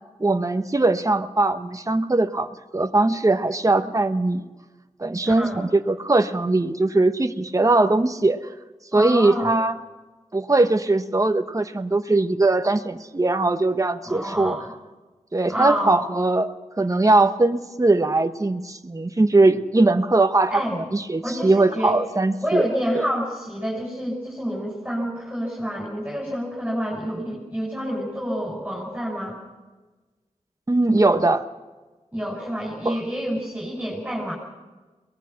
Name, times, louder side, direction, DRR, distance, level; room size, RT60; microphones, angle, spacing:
voice 1, 0.2-2.5 2.7-4.4 5.0-8.4 8.9-9.7 10.3-14.6 15.3-22.7 22.9-23.0 30.7-31.4 32.8-33.0, right 2 dB, 25° right, 7 dB, 1.1 m, -20 dB
voice 2, 5.2-5.6 8.9-9.6 14.0-14.7 15.5-16.0 20.5-20.7 21.2-22.0 22.4-29.4 32.1-34.3, equal, 10° right, -3 dB, 6.4 m, -28 dB
23.0 x 19.0 x 5.9 m, 1.2 s
wide cardioid pair, 70°, 13 cm